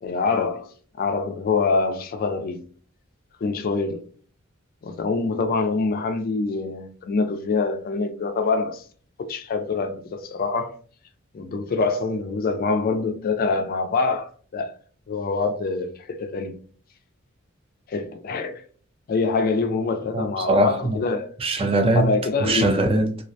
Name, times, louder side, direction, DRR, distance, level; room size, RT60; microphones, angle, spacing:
voice 1, 0.0-2.6 3.4-4.1 4.8-8.8 9.2-10.8 11.3-14.7 15.1-16.6 17.9-18.6 19.1-21.3 22.0-22.7, left 4 dB, 45° left, 0.3 m, -25 dB
voice 2, 20.1-21.0 21.4-23.2, right 1 dB, 25° right, 0.4 m, -21 dB
2.3 x 2.1 x 2.6 m
head